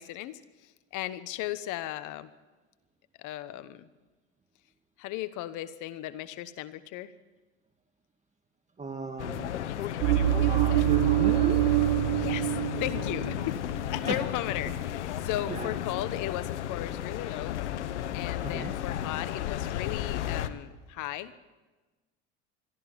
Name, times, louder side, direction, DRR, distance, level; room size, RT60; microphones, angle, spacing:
voice 1, 0.0-2.3 3.2-3.9 5.0-7.1 12.1-13.6 13.9-17.6 18.1-21.4, left 14 dB, 60° left, 14 dB, 1.2 m, -36 dB
voice 2, 8.8-9.5 10.5-11.7 14.1-14.2 15.5-15.7 18.4-18.7, right 3 dB, 20° right, 5 dB, 2.0 m, -35 dB
sound 1, 9.2-20.5, left 11 dB, 90° left, 1.2 m, -34 dB
sound 2, 10.0-13.5 13.7-14.1, right 15 dB, 75° right, 1.5 m, -25 dB
22.5 x 14.0 x 10.0 m, 1.2 s
hypercardioid pair, 80°, 34 cm